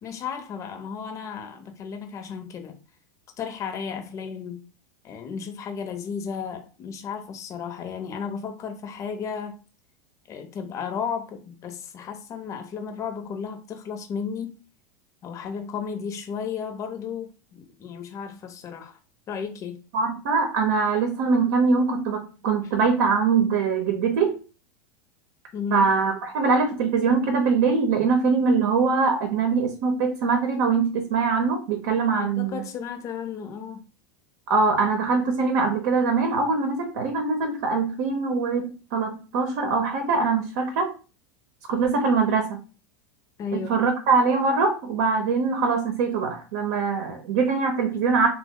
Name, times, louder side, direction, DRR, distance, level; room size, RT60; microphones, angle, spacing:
voice 1, 0.0-2.8 3.4-4.6 5.0-9.5 10.3-14.6 15.2-19.0 19.3-19.8 25.5-25.9 32.1-33.8 43.4-43.8, left 6 dB, 35° left, 0.6 m, -34 dB
voice 2, 19.9-24.4 25.7-32.6 34.5-40.9 41.7-42.6 43.5-48.3, right 4 dB, 70° right, 0.7 m, -23 dB
2.9 x 2.0 x 3.6 m
supercardioid pair, 115°, 10 cm